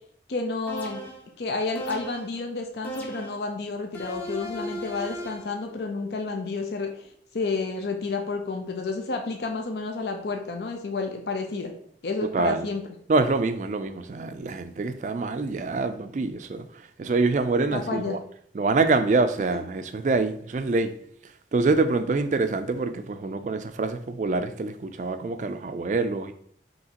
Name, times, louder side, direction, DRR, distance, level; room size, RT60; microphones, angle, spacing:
voice 1, 0.3-1.0 1.4-6.9 7.3-11.7 12.0-12.9 17.7-18.2, left 3 dB, 70° left, 0.5 m, -30 dB
sound 1, 0.7-1.3 1.7-2.4 2.8-3.5 3.9-5.5, equal, 10° left, 0.6 m, -37 dB
voice 2, 12.3-12.7 13.1-16.6 17.0-18.2 18.6-20.9 21.5-26.3, right 3 dB, 45° right, 0.3 m, -25 dB
5.5 x 2.9 x 2.8 m
head